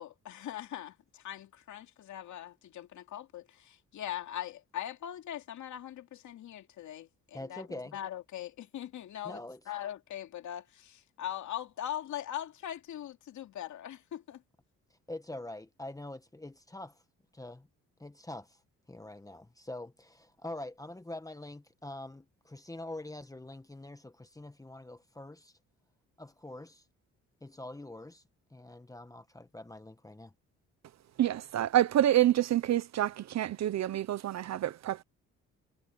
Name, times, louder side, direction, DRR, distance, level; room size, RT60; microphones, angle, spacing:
voice 1, 0.0-14.4, left 11 dB, 75° left, 2.7 m, -41 dB
voice 2, 7.3-8.0 9.2-9.6 14.9-17.0 17.3-17.7 18.0-18.6 18.9-25.6 26.2-26.9 27.4-28.2 28.5-30.3, left 1 dB, 10° left, 1.4 m, -44 dB
voice 3, 31.2-35.0, right 12 dB, 65° right, 0.9 m, -27 dB
cardioid pair, 90°, 30 cm